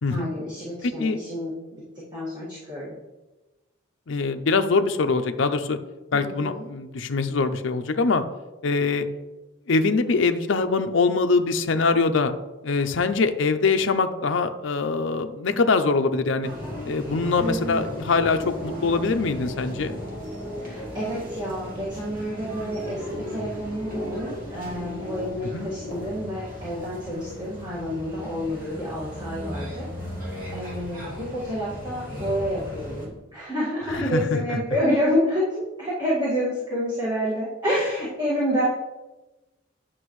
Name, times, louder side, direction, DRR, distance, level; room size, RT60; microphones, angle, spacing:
voice 1, 0.1-1.8 2.1-2.9 6.1-6.7 17.4-17.9 20.6-29.9 30.5-35.5 35.8-38.6, equal, 20° right, -10 dB, 1.9 m, -28 dB
voice 2, 4.1-5.8 6.1-8.2 8.6-9.1 9.7-12.3 12.6-16.5 16.9-20.0 25.5-25.7 33.9-34.6, left 4 dB, 70° left, 7 dB, 0.5 m, -23 dB
sound 1, 16.4-33.1, equal, 40° right, 2.4 m, -36 dB
9.6 x 5.9 x 3.1 m, 1.1 s
head